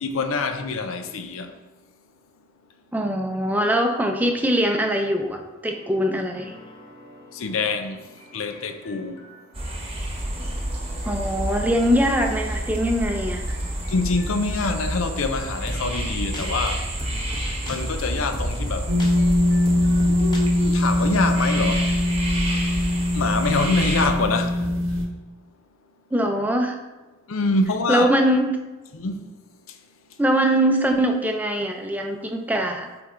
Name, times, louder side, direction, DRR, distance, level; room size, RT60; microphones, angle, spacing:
voice 1, 0.0-1.5 7.3-8.1 8.3-9.2 13.9-16.8 17.7-18.9 20.1-21.9 23.1-24.6 27.3-28.1 28.9-29.3, left 3 dB, 85° left, 0.6 m, -25 dB
voice 2, 2.9-6.5 11.0-13.6 26.1-26.8 27.9-28.6 30.2-32.9, equal, 10° right, 0.5 m, -22 dB
sound 1, 5.7-9.5 10.3-14.8 15.7-20.4, equal, 20° left, 0.9 m, -37 dB
sound 2, 9.5-24.1, right 1 dB, 25° right, 1.0 m, -30 dB
sound 3, 18.9-25.1, left 1 dB, 85° right, 1.1 m, -22 dB
8.2 x 3.4 x 3.7 m
head